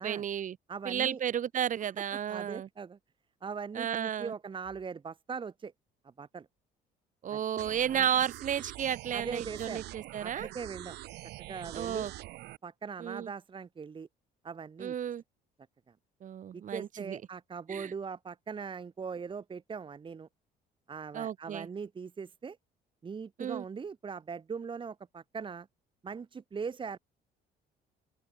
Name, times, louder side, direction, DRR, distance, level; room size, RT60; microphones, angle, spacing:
voice 1, 0.0-0.6 0.9-2.7 3.7-4.3 7.2-10.5 11.7-12.1 13.0-13.3 14.8-15.2 16.2-17.2 17.7-17.9 21.1-21.7 23.4-23.6, right 9 dB, 50° right, 2.6 m, -33 dB
voice 2, 0.7-1.2 1.8-3.0 3.4-5.7 6.0-6.5 7.3-7.4 7.9-8.1 9.1-9.9 10.2-11.0 11.5-12.1 12.6-14.1 14.4-14.9 16.5-20.3 20.9-22.6 23.0-25.7 26.0-27.0, right 5 dB, 30° right, 1.7 m, -40 dB
sound 1, 7.6-12.6, right 17 dB, 80° right, 4.1 m, -45 dB
open air
cardioid pair, 110°, 17 cm